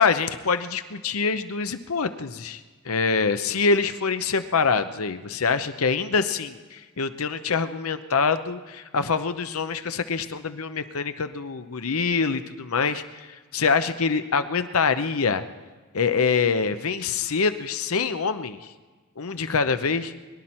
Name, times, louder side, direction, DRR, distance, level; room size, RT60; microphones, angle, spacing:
voice 1, 0.0-15.4 15.9-18.7 19.2-20.1, left 5 dB, 75° left, 10 dB, 0.8 m, -25 dB
22.5 x 11.0 x 4.4 m, 1.4 s
head